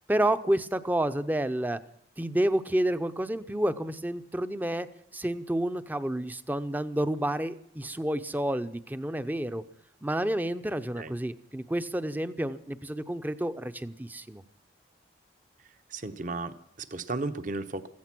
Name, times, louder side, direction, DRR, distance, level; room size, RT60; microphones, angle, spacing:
voice 1, 0.1-1.8 2.2-4.9 5.1-9.6 10.0-14.4, right 1 dB, 10° right, 12 dB, 0.6 m, -29 dB
voice 2, 15.9-17.9, right 3 dB, 45° right, 11 dB, 0.9 m, -34 dB
16.0 x 15.0 x 6.0 m, 0.68 s
head